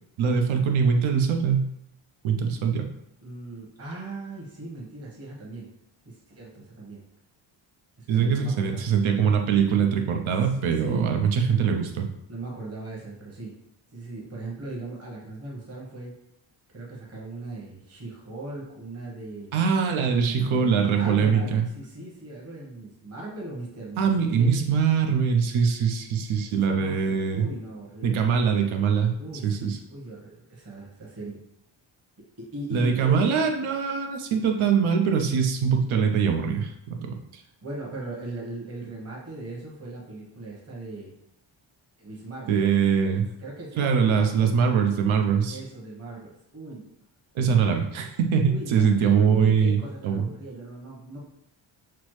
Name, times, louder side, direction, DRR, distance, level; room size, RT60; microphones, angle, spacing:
voice 1, 0.2-1.7 2.2-2.9 8.1-12.1 19.5-21.6 24.0-27.5 28.0-29.1 29.4-29.8 32.7-37.4 42.5-43.2 43.8-45.6 47.3-50.3, right 6 dB, 80° right, 3 dB, 0.7 m, -23 dB
voice 2, 3.2-5.7 6.0-7.0 8.0-8.8 10.8-11.1 12.3-13.5 13.9-16.2 16.7-19.5 20.2-24.6 26.4-28.2 29.2-31.4 32.2-33.5 37.6-41.1 42.0-42.6 43.4-44.3 45.5-46.9 48.4-51.3, right 2 dB, 30° right, -4 dB, 1.1 m, -38 dB
6.0 x 2.0 x 3.1 m, 0.78 s
wide cardioid pair, 155°, 47 cm